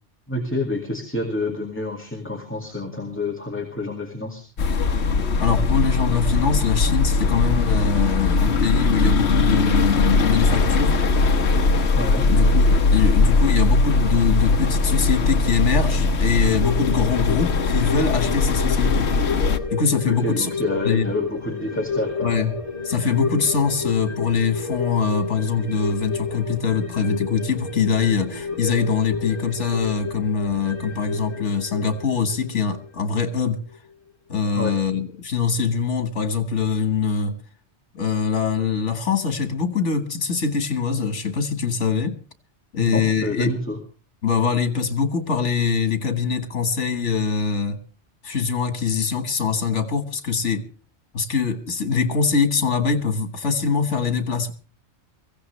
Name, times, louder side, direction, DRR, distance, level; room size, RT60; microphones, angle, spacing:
voice 1, 0.3-4.4 12.0-12.3 20.1-22.3 34.5-34.8 42.8-43.8, left 1 dB, 10° left, 2.1 m, -28 dB
sound 1, 4.6-19.6, left 3 dB, 70° left, 1.2 m, -20 dB
voice 2, 5.4-10.9 12.3-19.2 19.7-20.5 20.9-21.0 22.2-22.6 22.8-33.6 34.3-37.4 37.9-42.2 42.7-43.6 44.2-47.8 48.2-50.7 51.1-54.5, left 5 dB, 85° left, 1.9 m, -23 dB
sound 2, 16.6-33.4 33.7-33.8, left 5 dB, 30° right, 2.9 m, -31 dB
22.5 x 15.5 x 3.3 m
omnidirectional pair, 1.2 m